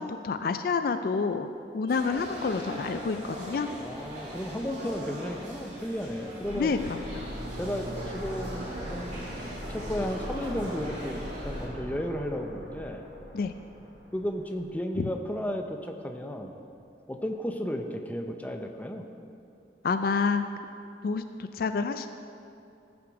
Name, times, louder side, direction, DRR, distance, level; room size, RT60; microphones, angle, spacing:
voice 1, 0.0-1.5 1.7-3.7 6.6-7.3 13.3-13.5 15.0-15.1 19.8-20.4 21.0-22.1, left 4 dB, 55° left, 9 dB, 0.3 m, -28 dB
sound 1, 1.9-11.7, equal, 40° right, 2.3 m, -40 dB
voice 2, 3.8-6.7 7.6-9.3 9.7-13.0 14.1-16.5 17.1-19.0, equal, 10° left, 4 dB, 0.6 m, -34 dB
sound 2, 6.4-15.2 15.4-15.5, equal, 70° right, 1.9 m, -40 dB
14.0 x 6.1 x 4.8 m, 2.6 s
head